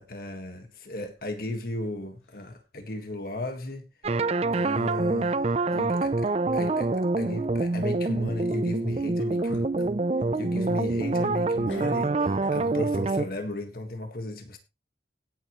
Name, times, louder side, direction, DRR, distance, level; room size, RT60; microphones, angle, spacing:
voice 1, 0.0-3.9 4.2-9.9 10.3-14.6, left 1 dB, 50° left, 1.7 m, -35 dB
sound 1, 1.2-1.9 2.2-2.7 3.1-3.2 4.1-4.2 4.9-5.0 5.4-5.8 6.1-6.2 8.7-8.8 9.2-9.7 10.2-11.4 11.7-13.0, left 2 dB, 90° left, 5.1 m, -53 dB
sound 2, 4.0-13.3, right 3 dB, 35° right, 0.5 m, -26 dB
17.0 x 8.1 x 3.1 m
head